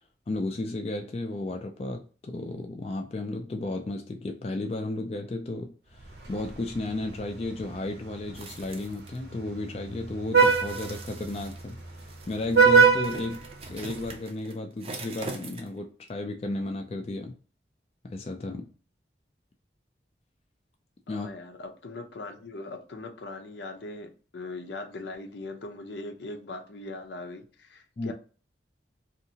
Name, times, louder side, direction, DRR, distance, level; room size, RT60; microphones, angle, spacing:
voice 1, 0.3-11.8 12.3-17.3 18.0-18.7 21.1-21.3 28.0-28.1, left 2 dB, 35° left, 4 dB, 0.3 m, -33 dB
Vehicle horn car horn honking, 6.0-14.2, right 5 dB, 70° right, 0.7 m, -26 dB
sound 1, 8.3-9.2 10.4-15.8 16.1-16.2, right 3 dB, 30° right, 0.4 m, -43 dB
voice 2, 21.1-28.1, left 2 dB, 80° left, 4 dB, 0.6 m, -40 dB
2.7 x 2.5 x 2.7 m, 0.38 s
head